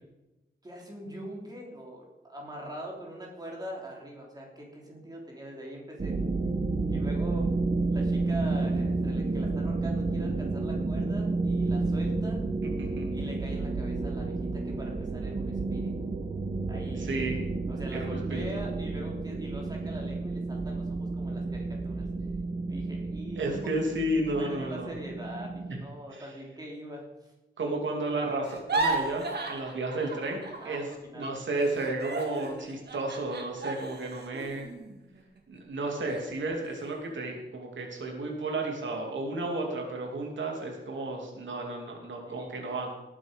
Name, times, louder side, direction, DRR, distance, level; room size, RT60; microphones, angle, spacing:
voice 1, 0.6-6.2 6.9-7.5 7.9-12.4 13.1-15.9 16.7-17.1 17.7-22.1 22.7-23.6 24.4-27.3 30.6-31.3 42.3-42.7, right 1 dB, 20° right, -2 dB, 3.5 m, -43 dB
sound 1, 6.0-25.8, right 3 dB, 35° right, 1.0 m, -31 dB
voice 2, 17.0-17.4 17.9-18.6 23.4-24.9 26.1-26.2 27.6-30.9 31.1-34.7 35.5-42.9, right 2 dB, 90° right, 1 dB, 2.7 m, -32 dB
sound 2, 28.4-31.0 31.2-35.6 36.1-36.3 36.6-37.1, right 3 dB, 60° right, 2.0 m, -35 dB
18.5 x 8.9 x 5.2 m, 0.99 s
wide cardioid pair, 165°, 19 cm